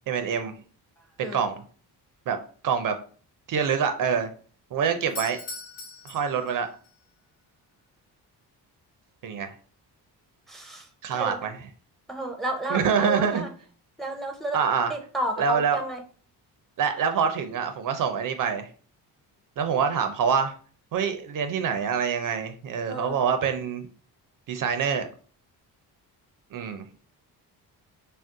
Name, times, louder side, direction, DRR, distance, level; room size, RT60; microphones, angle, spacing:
voice 1, 0.1-0.5 1.2-1.6 2.3-2.4 2.6-2.9 3.5-4.3 4.7-5.4 6.0-6.7 9.2-9.5 11.0-11.6 12.7-13.4 14.5-14.9 15.4-15.8 16.8-18.7 19.6-20.5 20.9-23.8 24.5-25.1 26.5-26.8, right 6 dB, 55° right, 8 dB, 0.4 m, -25 dB
Doorbell, 5.1-7.0, left 3 dB, 80° left, 0.9 m, -40 dB
voice 2, 10.5-11.5 12.1-13.5 14.0-14.6 14.9-16.0 22.9-23.2, right 1 dB, ahead, 4 dB, 0.5 m, -32 dB
2.5 x 2.0 x 3.6 m, 0.42 s
cardioid pair, 75°, 40 cm